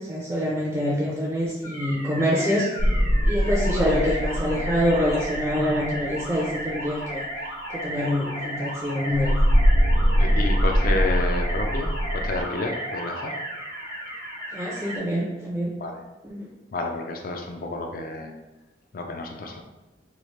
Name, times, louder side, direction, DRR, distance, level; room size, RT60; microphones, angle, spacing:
voice 1, 0.1-2.7 3.2-7.2 7.8-9.4 14.5-15.7 16.3-16.5, equal, 15° right, -4 dB, 0.4 m, -25 dB
sound 1, 1.6-15.0, right 1 dB, 85° left, 1.3 m, -34 dB
sound 2, 2.8-6.3 9.1-12.4, equal, 65° right, 0.6 m, -22 dB
voice 2, 10.2-13.3 15.8-16.0 16.7-18.3 18.9-19.6, left 2 dB, 50° left, 3 dB, 0.4 m, -30 dB
3.1 x 2.4 x 3.1 m, 1.1 s
head